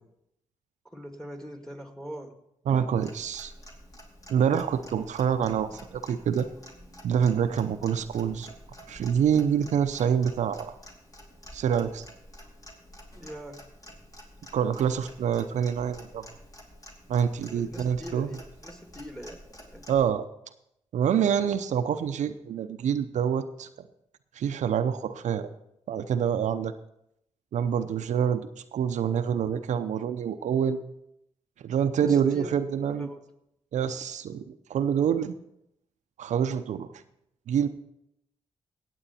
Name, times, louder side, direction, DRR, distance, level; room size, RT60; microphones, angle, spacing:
voice 1, 0.8-2.3 13.1-13.6 17.4-19.4 19.7-19.9 32.0-32.6 32.9-33.3, equal, 5° left, 5 dB, 1.9 m, -42 dB
voice 2, 2.7-3.5 4.3-6.5 7.0-8.5 8.9-10.7 11.5-12.1 14.5-16.3 17.1-18.3 19.9-20.2 20.9-23.7 24.3-25.5 25.9-26.7 27.5-28.4 28.7-30.9 31.6-33.1 33.7-35.3 36.2-36.9 37.5-37.7, right 8 dB, 75° right, 9 dB, 0.6 m, -26 dB
Clock, 3.0-20.1, equal, 30° left, 2.7 m, -49 dB
16.5 x 7.9 x 4.3 m, 0.78 s
cardioid pair, 60°, 12 cm